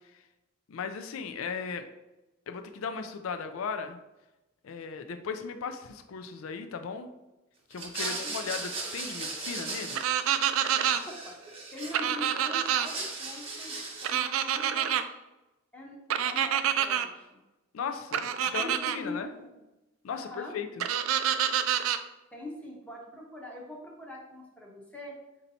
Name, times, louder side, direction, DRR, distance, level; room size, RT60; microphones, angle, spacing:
voice 1, 0.7-1.8 2.5-4.0 4.6-7.1 7.7-10.2 17.7-18.3 18.5-19.3 20.0-20.8, left 6 dB, 80° left, 8 dB, 0.4 m, -36 dB
sound 1, 7.7-10.4 10.6-12.3 12.6-14.3, right 3 dB, 30° right, 0.9 m, -37 dB
voice 2, 8.0-8.6 10.9-11.4 11.7-15.1 15.7-16.0 16.2-17.3 18.4-19.6 20.1-20.5 22.3-25.2, left 1 dB, 5° left, -2 dB, 0.7 m, -43 dB
sound 2, 9.9-11.0 11.9-12.9 14.0-15.0 16.1-17.1 18.1-19.0 20.8-22.0, right 9 dB, 80° right, 0.3 m, -27 dB
4.3 x 2.7 x 4.0 m, 1.0 s
head